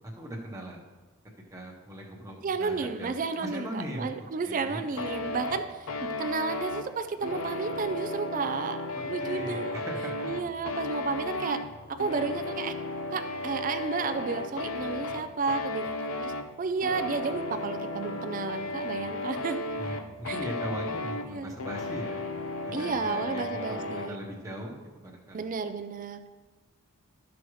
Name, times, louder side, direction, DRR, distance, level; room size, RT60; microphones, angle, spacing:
voice 1, 0.2-0.8 1.5-4.9 8.9-10.3 19.8-22.3 22.7-25.5, equal, 15° right, -2 dB, 1.0 m, -39 dB
voice 2, 2.4-8.8 9.1-9.8 10.2-11.6 11.9-12.7 13.1-19.6 20.2-20.4 21.3-21.5 22.7-24.2 25.3-26.3, right 4 dB, 35° right, 8 dB, 0.4 m, -32 dB
sound 1, 5.0-24.1, left 2 dB, 70° left, 0.5 m, -35 dB
12.0 x 6.2 x 3.1 m, 1.3 s
head